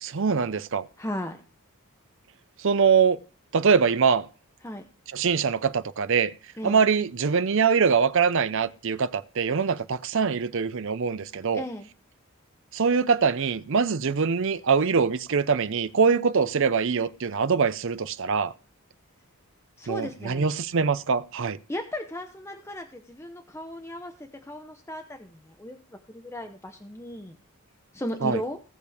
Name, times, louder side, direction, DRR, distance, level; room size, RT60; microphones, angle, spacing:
voice 1, 0.0-0.9 2.6-3.2 3.5-4.3 5.1-6.3 6.6-11.6 12.7-18.5 19.9-21.6 28.2-28.4, right 5 dB, 60° right, 0.6 m, -23 dB
voice 2, 1.0-1.4 4.6-4.8 6.6-6.9 11.5-11.9 19.8-20.5 21.7-27.4 27.9-28.6, left 1 dB, 10° left, 0.7 m, -36 dB
17.5 x 6.6 x 3.5 m
head